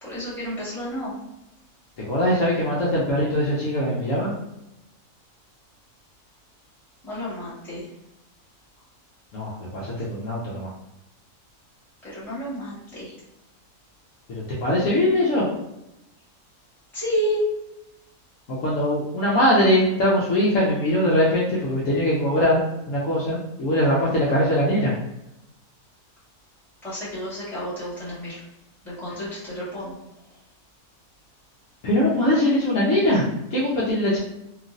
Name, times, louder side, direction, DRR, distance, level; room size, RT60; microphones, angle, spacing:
voice 1, 0.0-1.1 7.0-7.9 12.0-13.1 16.9-17.5 26.8-28.4 28.8-29.9, equal, ahead, -11 dB, 1.1 m, -30 dB
voice 2, 2.0-4.3 9.3-10.7 14.3-15.5 18.5-22.6 22.9-24.9 31.8-34.2, left 1 dB, 65° left, -5 dB, 0.9 m, -21 dB
2.9 x 2.4 x 2.5 m, 0.91 s
omnidirectional pair, 1.6 m